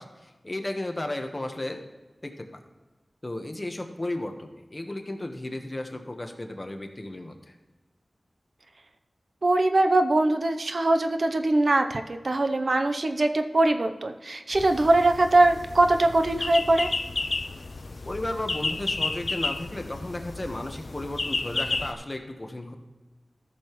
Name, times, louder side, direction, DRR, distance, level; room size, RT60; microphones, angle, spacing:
voice 1, 0.0-1.8 2.2-2.6 3.2-7.5 18.0-22.8, left 1 dB, 30° left, 5 dB, 1.1 m, -34 dB
voice 2, 9.4-16.9, right 2 dB, 60° right, 7 dB, 0.7 m, -22 dB
sound 1, 14.5-21.9, left 3 dB, 65° left, 0.5 m, -32 dB
14.0 x 6.8 x 3.1 m, 1.2 s
wide cardioid pair, 70°, 0 cm